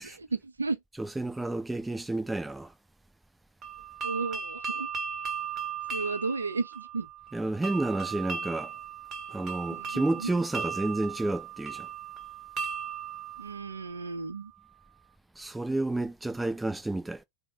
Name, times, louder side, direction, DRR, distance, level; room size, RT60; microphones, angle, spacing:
voice 1, 0.0-0.8 4.0-4.9 5.9-7.1 9.7-10.3 13.4-14.5, right 4 dB, 75° right, 0.5 m, -33 dB
voice 2, 1.0-2.7 7.3-8.7 9.3-11.9 15.4-17.2, right 2 dB, 5° right, 0.4 m, -30 dB
sound 1, 3.6-14.4, right 7 dB, 30° right, 0.8 m, -37 dB
3.9 x 2.0 x 2.8 m
figure-of-eight pair, 90°, 0 cm